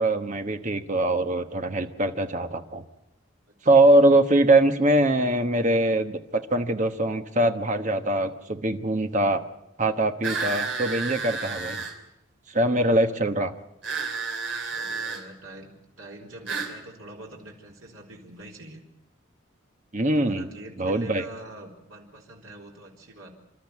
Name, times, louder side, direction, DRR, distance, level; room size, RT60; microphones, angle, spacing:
voice 1, 0.0-2.8 3.6-9.4 9.8-11.8 12.5-13.5 19.9-20.5 20.8-21.2, right 1 dB, 35° right, 7 dB, 1.2 m, -22 dB
sound 1, 10.2-12.0 13.8-15.2 16.5-16.8, right 4 dB, 60° right, 3.0 m, -31 dB
voice 2, 13.1-13.4 14.7-18.8 20.2-23.3, right 1 dB, 85° right, -1 dB, 3.9 m, -45 dB
28.5 x 12.5 x 8.5 m, 0.87 s
head